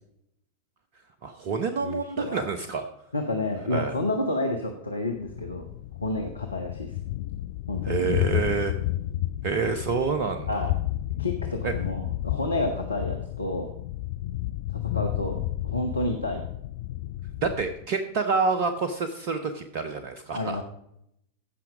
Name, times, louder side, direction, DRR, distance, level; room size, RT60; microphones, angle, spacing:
voice 1, 1.2-2.9 3.7-3.9 7.8-8.7 9.4-10.7 11.6-11.7 17.4-20.6, right 5 dB, 45° right, 9 dB, 0.8 m, -27 dB
voice 2, 1.8-2.4 3.1-5.6 6.0-6.9 7.7-8.0 10.5-10.7 11.2-13.7 14.7-16.4 20.3-20.6, left 2 dB, 80° left, 4 dB, 1.0 m, -30 dB
Thunder, 5.2-17.8, left 15 dB, 50° left, 0.3 m, -31 dB
15.5 x 5.9 x 5.1 m, 0.76 s
figure-of-eight pair, 90°, 0 cm